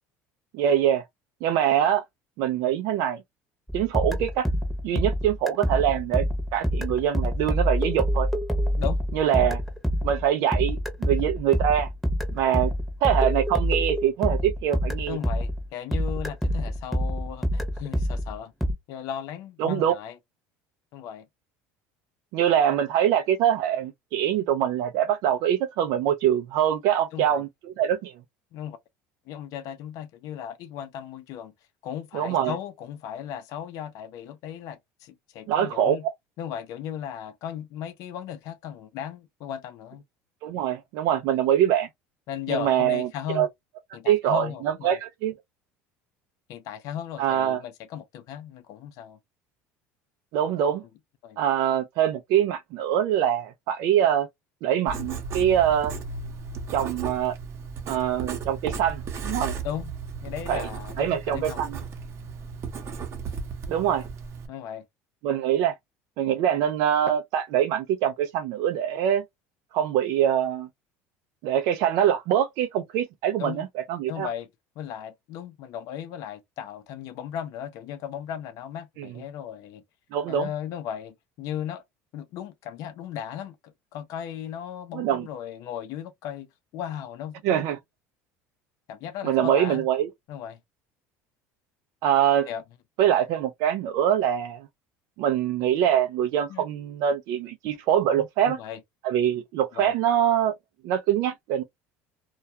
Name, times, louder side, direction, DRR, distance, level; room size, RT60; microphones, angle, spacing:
voice 1, 0.5-1.0 1.4-2.0 2.4-3.2 3.7-4.5 4.8-6.2 6.5-8.3 9.1-9.6 10.0-11.9 12.3-12.7 13.0-15.2 19.6-19.9 22.3-28.1 32.1-32.5 35.5-36.0 40.4-41.9 42.5-43.1 43.3-43.5 44.1-45.3 47.2-47.6 50.3-50.8 51.4-54.3 54.6-55.9 56.7-57.4 57.9-59.5 60.5-60.7 61.0-61.8 63.7-64.1 65.2-65.7 66.2-69.2 69.7-70.7 71.4-74.3 79.0-79.1 80.1-80.5 84.9-85.3 87.4-87.8 89.2-90.1 92.0-92.5 93.0-94.7 95.2-98.6 99.0-100.5 100.8-101.6, right 10 dB, 70° right, 0.4 m, -24 dB
sound 1, 3.7-15.7 15.9-18.7, equal, ahead, 0.8 m, -26 dB
voice 2, 8.7-9.5 15.1-18.5 18.9-20.2 20.9-21.3 27.1-27.4 28.5-28.8 29.3-31.5 31.8-36.0 36.4-40.0 42.3-43.5 43.9-45.0 46.5-49.2 51.2-51.4 59.6-59.9 60.2-61.6 64.5-64.8 73.4-73.7 74.1-74.5 74.8-79.8 80.3-81.8 82.1-86.5 86.7-87.7 88.9-89.9 90.3-90.6 92.5-92.6 96.5-96.6 98.1-98.8 99.7-99.9, left 9 dB, 65° left, 0.5 m, -36 dB
Writing, 54.9-64.5, right 5 dB, 45° right, 0.8 m, -35 dB
2.2 x 2.2 x 2.6 m
supercardioid pair, 110°, 6 cm